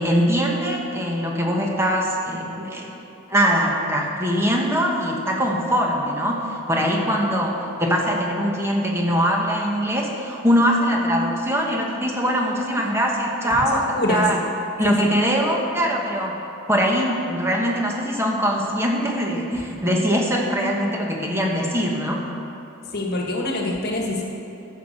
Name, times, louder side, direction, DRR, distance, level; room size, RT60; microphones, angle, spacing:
voice 1, 0.0-2.9 3.3-14.4 14.8-16.4 16.7-22.2, equal, 10° right, -1 dB, 1.3 m, -22 dB
voice 2, 13.4-14.3 14.8-15.0 22.9-24.2, left 2 dB, 50° left, 0 dB, 1.5 m, -25 dB
10.5 x 7.4 x 6.5 m, 2.9 s
head